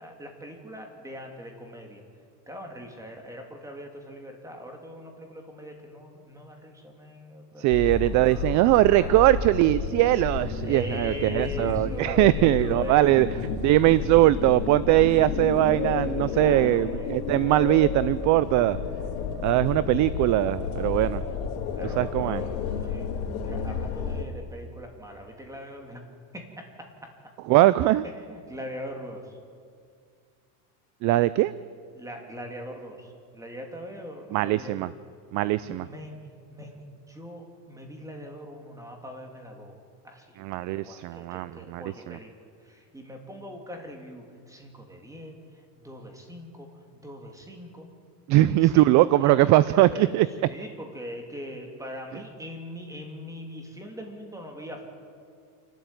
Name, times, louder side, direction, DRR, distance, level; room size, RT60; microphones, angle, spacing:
voice 1, 0.0-2.0 2.5-7.7 8.0-8.6 8.8-9.3 10.6-13.2 16.2-17.2 21.7-22.6 22.8-23.1 23.5-26.0 26.3-27.1 28.0-29.3 31.9-34.9 35.6-36.2 36.5-39.8 40.0-40.5 40.7-42.3 42.6-45.4 45.7-47.9 48.3-54.8, equal, 5° right, 2 dB, 3.2 m, -41 dB
voice 2, 7.6-13.3 13.6-18.8 19.4-21.2 22.0-22.4 27.5-28.0 31.0-31.5 34.3-34.9 35.3-35.9 40.4-42.2 48.3-50.3, right 16 dB, 40° right, 17 dB, 0.5 m, -21 dB
sound 1, 7.7-24.2, left 6 dB, 75° left, 3.8 m, -31 dB
27.5 x 13.0 x 9.2 m, 2.2 s
supercardioid pair, 135°, 47 cm